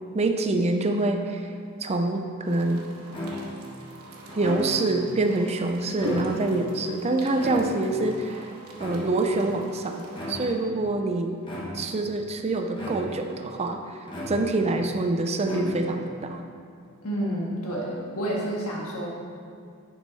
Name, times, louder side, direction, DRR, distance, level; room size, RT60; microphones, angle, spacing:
voice 1, 0.1-1.5 1.8-2.9 4.4-8.5 8.8-11.4 11.7-14.0 14.3-16.4, right 2 dB, 30° right, 5 dB, 0.4 m, -26 dB
sound 1, 2.4-10.5, equal, 80° right, 1.4 m, -40 dB
sound 2, 3.1-3.7 4.3-5.0 5.8-6.6 7.4-8.1 8.8-9.4 10.1-10.7 11.4-12.0 12.8-13.4 14.1-14.8 15.4-16.1, equal, 25° left, 1.4 m, -35 dB
voice 2, 17.0-19.1, right 1 dB, 70° left, -3 dB, 1.7 m, -29 dB
10.5 x 5.4 x 4.1 m, 2.3 s
head